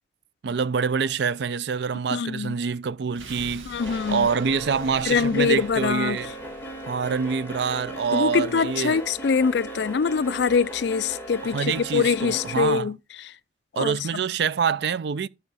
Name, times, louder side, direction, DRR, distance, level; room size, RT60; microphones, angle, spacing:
voice 1, 0.4-3.7 4.1-6.3 6.9-9.0 11.5-12.9 13.8-15.3, right 6 dB, 60° right, 0.4 m, -26 dB
voice 2, 2.1-2.6 3.7-4.3 5.1-6.2 8.1-13.0 13.2-13.3 13.8-14.0, left 5 dB, 60° left, 0.4 m, -24 dB
sound 1, 3.1-8.1 8.4-8.5, right 2 dB, 85° right, 1.8 m, -45 dB
sound 2, 3.8-12.6, right 1 dB, 10° left, 1.8 m, -37 dB
12.0 x 5.6 x 4.1 m
head